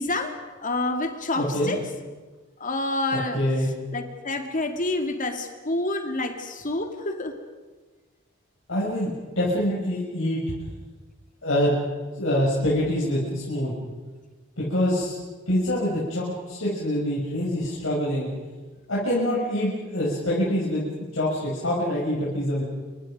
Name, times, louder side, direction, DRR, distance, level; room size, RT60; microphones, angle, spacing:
voice 1, 0.0-1.8 2.6-3.4 3.9-7.3, left 2 dB, 40° left, 6 dB, 2.2 m, -28 dB
voice 2, 1.3-1.8 3.1-3.7 8.7-9.1 9.4-10.4 11.4-11.7 12.2-13.7 14.6-15.1 15.5-18.3 18.9-22.6, left 1 dB, 70° left, -7 dB, 6.7 m, -25 dB
29.0 x 25.0 x 5.3 m, 1.3 s
head